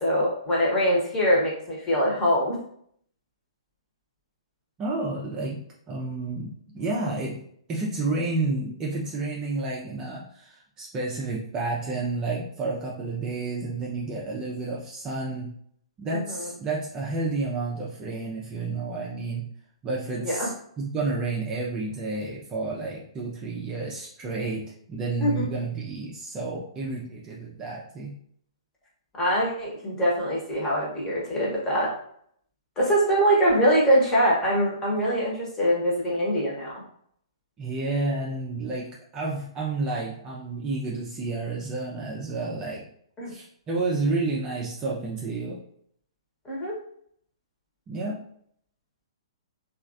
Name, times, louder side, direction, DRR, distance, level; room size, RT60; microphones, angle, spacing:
voice 1, 0.0-2.6 16.1-16.5 20.2-20.5 25.2-25.3 29.1-31.9 32.8-36.7 43.2-43.3 46.4-46.8, equal, 20° left, -4 dB, 1.1 m, -23 dB
voice 2, 4.8-7.4 7.7-15.5 16.0-19.4 19.8-28.1 37.6-38.9 39.1-42.8 43.3-45.6 47.9-48.2, right 3 dB, 20° right, -4 dB, 0.5 m, -30 dB
3.1 x 2.4 x 2.5 m, 0.66 s
figure-of-eight pair, 120°, 3 cm